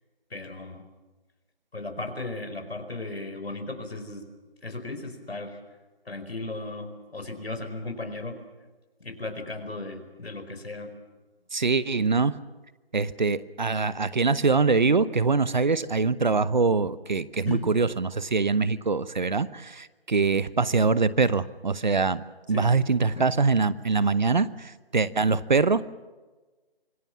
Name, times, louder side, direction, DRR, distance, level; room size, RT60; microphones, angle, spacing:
voice 1, 0.3-0.8 1.7-4.3 4.6-5.6 6.0-8.4 9.0-10.9 17.5-17.7 22.5-22.7 23.0-23.3, left 2 dB, 80° left, 7 dB, 4.9 m, -36 dB
voice 2, 11.5-12.4 12.9-22.2 22.5-25.8, right 4 dB, 50° right, 17 dB, 0.9 m, -23 dB
26.0 x 18.5 x 7.3 m, 1.2 s
figure-of-eight pair, 170°, 30 cm